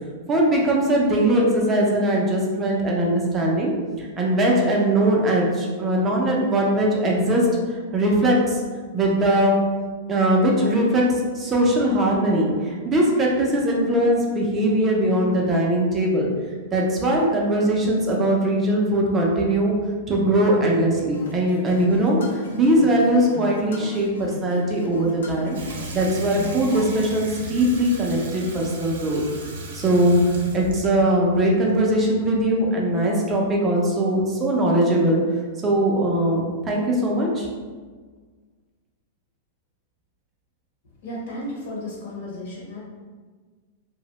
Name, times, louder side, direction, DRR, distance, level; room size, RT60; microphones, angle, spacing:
voice 1, 0.3-3.7 4.0-8.6 8.9-9.6 10.1-16.3 16.7-19.8 20.1-25.6 25.9-29.2 29.7-30.2 30.5-35.2 35.6-37.5, right 1 dB, 15° right, -2 dB, 0.3 m, -20 dB
sound 1, 21.1-27.1, equal, 80° left, 0.4 m, -38 dB
Water tap faucet / Sink (filling or washing), 25.5-32.6, right 2 dB, 65° right, 0.6 m, -37 dB
voice 2, 41.0-42.8, left 1 dB, 50° left, -4 dB, 1.0 m, -33 dB
2.9 x 2.0 x 2.8 m, 1.5 s
supercardioid pair, 175°, 0 cm